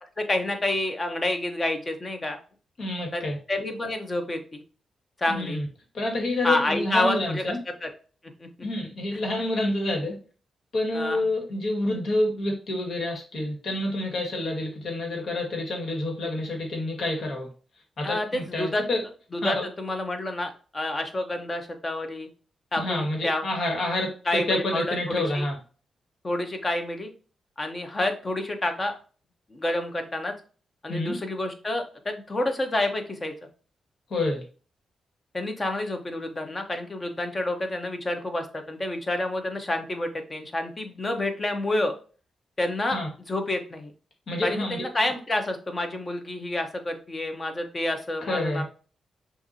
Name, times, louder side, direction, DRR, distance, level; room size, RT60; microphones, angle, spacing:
voice 1, 0.0-2.4 3.1-3.2 3.5-4.6 5.2-5.6 6.4-7.6 7.8-7.9 8.4-8.5 10.9-11.2 18.0-18.8 19.3-22.3 22.7-23.5 24.3-25.4 26.2-27.1 27.6-28.9 29.5-30.3 30.8-33.3 35.3-41.9 42.6-43.0 43.3-43.9 44.4-48.6, left 1 dB, 30° left, 5 dB, 0.9 m, -28 dB
voice 2, 2.8-3.4 5.3-5.7 5.9-7.6 8.6-10.2 10.7-17.5 18.0-19.0 19.4-19.5 22.8-25.5 30.9-31.2 34.1-34.4 42.9-43.1 44.3-44.8 48.3-48.6, left 1 dB, 65° left, 0 dB, 1.8 m, -28 dB
5.9 x 2.6 x 2.8 m, 0.38 s
cardioid pair, 90°, 0 cm